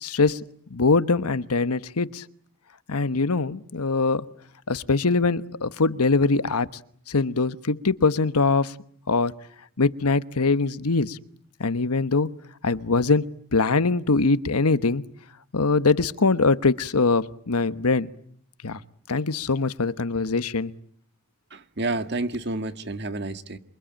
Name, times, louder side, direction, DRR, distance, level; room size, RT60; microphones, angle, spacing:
voice 1, 0.0-0.4 0.7-2.2 2.9-4.2 4.7-6.7 7.1-8.7 9.1-9.4 9.8-11.2 11.6-12.3 12.6-15.0 15.5-18.1 18.6-18.8 19.1-20.7, left 3 dB, 90° left, 1.2 m, -22 dB
voice 2, 21.5-23.6, right 2 dB, 50° right, 1.8 m, -30 dB
28.0 x 24.0 x 8.9 m
head